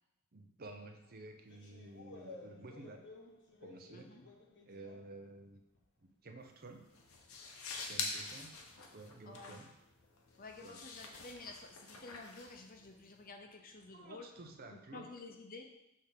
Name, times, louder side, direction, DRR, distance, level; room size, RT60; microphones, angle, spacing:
voice 1, 0.3-3.1 3.6-4.2 4.7-5.6 6.0-6.9 7.8-8.6 8.9-9.7 10.6-10.8 13.9-15.1, right 2 dB, 45° right, 4 dB, 0.7 m, -52 dB
sound 1, 0.8-6.0 6.4-15.3, left 2 dB, 60° left, 1.2 m, -60 dB
voice 2, 3.9-4.2 9.3-9.6 10.4-14.3 14.7-15.7, left 3 dB, 40° left, 4 dB, 0.8 m, -51 dB
sound 2, 6.4-13.2, left 4 dB, 75° left, 1.0 m, -46 dB
6.7 x 3.6 x 5.7 m, 0.91 s
head